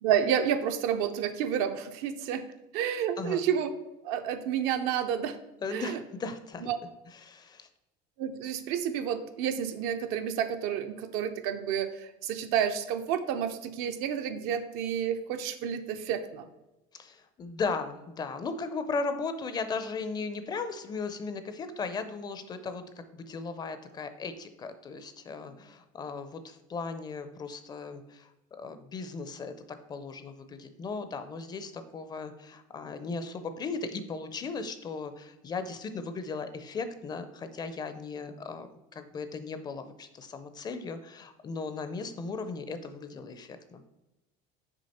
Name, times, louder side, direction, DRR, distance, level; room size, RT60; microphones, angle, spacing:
voice 1, 0.0-2.4 2.7-3.7 4.0-5.4 5.7-6.0 6.6-6.8 8.2-16.4, right 8 dB, 70° right, 8 dB, 0.7 m, -30 dB
voice 2, 5.6-6.7 7.1-7.7 16.9-22.8 23.1-29.5 29.9-43.8, left 4 dB, 25° left, 10 dB, 0.5 m, -37 dB
6.3 x 4.7 x 4.2 m, 0.97 s
cardioid pair, 150°, 17 cm